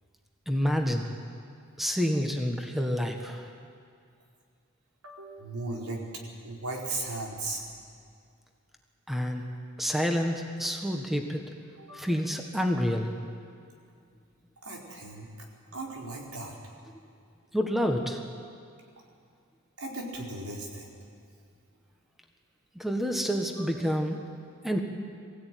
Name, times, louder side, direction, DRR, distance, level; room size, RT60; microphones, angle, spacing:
voice 1, 0.5-1.1 1.8-3.5 9.1-9.4 9.8-11.5 11.9-13.1 17.5-18.2 22.7-24.2 24.6-24.8, equal, ahead, 3 dB, 1.4 m, -28 dB
voice 2, 5.0-6.0 6.4-7.6 11.8-12.1 14.6-15.3 15.7-16.5 19.8-20.9 23.6-23.9, right 2 dB, 90° right, -2 dB, 4.5 m, -37 dB
22.5 x 16.0 x 9.3 m, 2.3 s
head